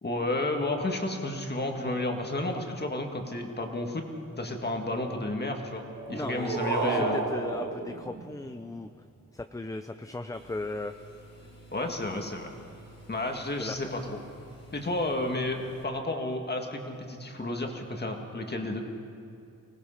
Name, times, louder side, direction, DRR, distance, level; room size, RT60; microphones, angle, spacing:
voice 1, 0.0-4.1 4.4-7.2 11.7-12.5 13.1-14.2 14.7-18.8, left 2 dB, 30° left, 3 dB, 1.9 m, -31 dB
sound 1, 5.9-8.8, right 3 dB, 90° right, 2.2 m, -32 dB
voice 2, 6.1-8.9 9.3-10.9 13.6-13.8, left 2 dB, 10° left, 8 dB, 0.4 m, -37 dB
sound 2, 10.3-15.8, right 1 dB, 50° left, 3.5 m, -52 dB
25.0 x 19.0 x 5.7 m, 2.6 s
wide cardioid pair, 170°, 33 cm